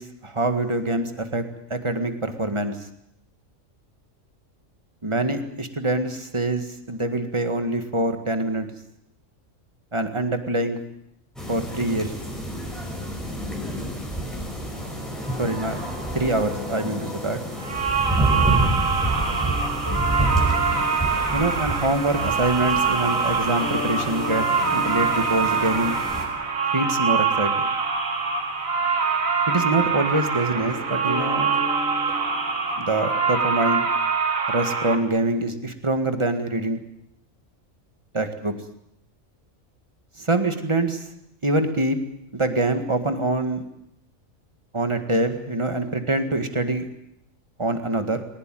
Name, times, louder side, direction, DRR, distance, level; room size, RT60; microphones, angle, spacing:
voice 1, 0.0-1.4 1.7-2.8 5.0-8.7 9.9-10.8 11.5-12.1 15.4-15.8 16.1-17.4 21.3-26.0 26.7-27.7 29.5-31.5 32.8-33.9 34.5-36.8 38.1-38.5 40.2-41.0 41.4-42.0 42.3-43.6 44.7-46.9 47.6-48.2, right 2 dB, 20° right, 7 dB, 1.9 m, -25 dB
sound 1, 11.4-26.2, right 1 dB, ahead, 6.0 m, -29 dB
sound 2, 14.7-32.7, left 2 dB, 65° left, 3.3 m, -39 dB
sound 3, 17.6-35.0, right 5 dB, 90° right, 2.4 m, -24 dB
20.5 x 19.0 x 9.3 m, 0.78 s
omnidirectional pair, 1.4 m